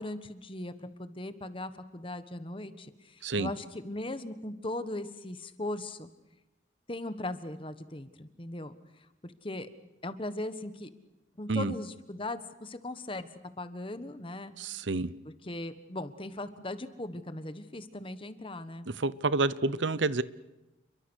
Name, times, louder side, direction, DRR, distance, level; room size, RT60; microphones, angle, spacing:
voice 1, 0.0-6.1 6.9-9.7 10.0-10.9 11.4-13.3 13.6-14.5 15.2-18.9, left 1 dB, 30° left, 11 dB, 1.4 m, -39 dB
voice 2, 14.6-15.1 19.0-20.2, right 3 dB, 90° right, 17 dB, 0.9 m, -28 dB
29.5 x 23.0 x 6.4 m, 0.99 s
head